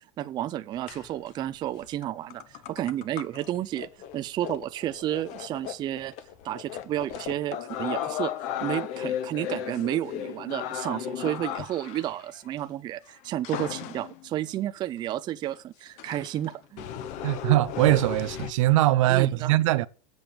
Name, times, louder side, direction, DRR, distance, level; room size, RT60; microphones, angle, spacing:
voice 1, 0.2-6.1 6.4-8.3 8.6-16.9 19.1-19.5, right 13 dB, 25° right, 0.5 m, -31 dB
sound 1, 0.9-1.3 1.8-2.0 2.3-12.5 13.4-14.3 15.0-15.1 15.4-15.5 16.0-18.5, left 10 dB, 40° left, 1.0 m, -35 dB
voice 2, 17.2-19.9, right 16 dB, 65° right, 0.7 m, -22 dB
7.8 x 7.1 x 6.8 m
supercardioid pair, 140°, 18 cm